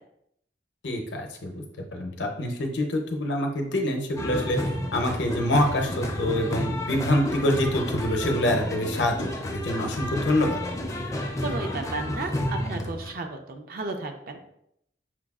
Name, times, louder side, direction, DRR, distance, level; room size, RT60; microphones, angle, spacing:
voice 1, 0.8-1.6 1.9-4.6 4.9-10.6, left 1 dB, 80° left, 3 dB, 0.6 m, -26 dB
sound 1, 4.2-13.1, left 1 dB, 20° left, 0.4 m, -31 dB
voice 2, 11.4-14.4, right 3 dB, 55° right, 5 dB, 0.4 m, -33 dB
5.8 x 2.3 x 2.3 m, 0.75 s
head